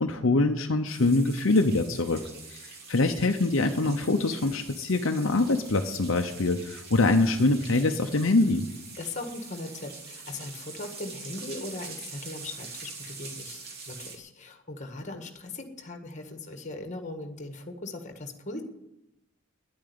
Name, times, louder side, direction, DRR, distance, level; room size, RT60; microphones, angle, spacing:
voice 1, 0.0-2.2 2.5-8.7, left 2 dB, 70° left, 4 dB, 0.9 m, -24 dB
sound 1, 0.8-14.2, right 4 dB, 50° right, 2.8 m, -44 dB
voice 2, 9.0-18.6, left 2 dB, 35° left, 6 dB, 1.7 m, -39 dB
10.5 x 8.8 x 9.6 m, 0.89 s
head